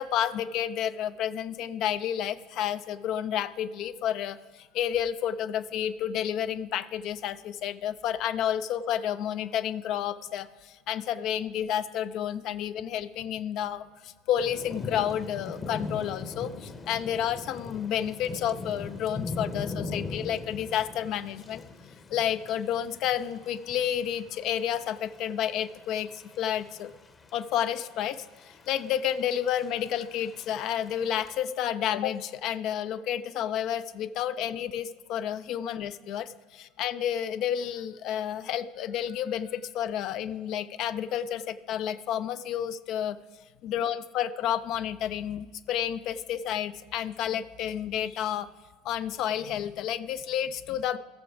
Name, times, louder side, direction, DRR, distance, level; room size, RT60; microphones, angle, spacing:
voice 1, 0.0-21.6 22.1-26.9 27.3-43.2 43.6-48.5 48.8-51.0, left 10 dB, 50° left, 12 dB, 0.4 m, -30 dB
Thunder / Rain, 14.4-31.4, left 3 dB, 25° left, 0.8 m, -41 dB
14.5 x 6.8 x 4.8 m, 1.3 s
figure-of-eight pair, 65°, 0 cm